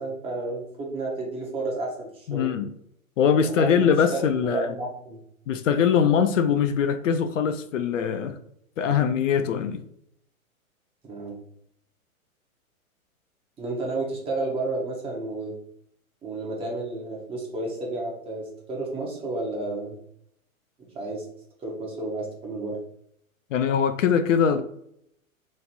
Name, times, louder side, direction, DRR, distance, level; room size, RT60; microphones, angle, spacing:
voice 1, 0.0-2.5 3.4-5.2 11.0-11.4 13.6-15.6 16.2-20.0 20.9-21.3 21.6-22.8, right 2 dB, 15° right, 0.7 m, -31 dB
voice 2, 2.3-2.7 3.2-4.7 5.5-8.4 8.8-9.8 23.5-24.6, left 7 dB, 65° left, 0.5 m, -22 dB
3.0 x 2.5 x 4.0 m
hypercardioid pair, 115°, 42 cm